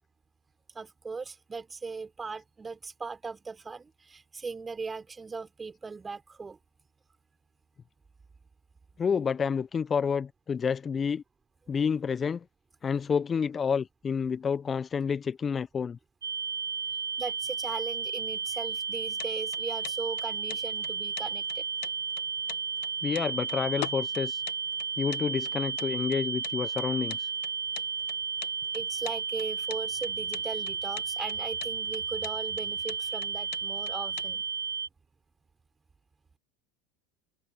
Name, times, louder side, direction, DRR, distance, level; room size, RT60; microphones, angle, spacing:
voice 1, 0.7-6.6 17.2-21.6 28.7-34.4, right 4 dB, 20° right, 4.6 m, -38 dB
voice 2, 9.0-11.2 11.7-12.4 12.8-16.0 23.0-24.4 25.0-27.3, left 6 dB, 25° left, 1.2 m, -29 dB
sound 1, 16.2-34.9, right 5 dB, 85° right, 0.4 m, -33 dB
sound 2, 18.9-34.3, left 27 dB, 60° left, 1.6 m, -44 dB
hypercardioid pair, 80°, 0 cm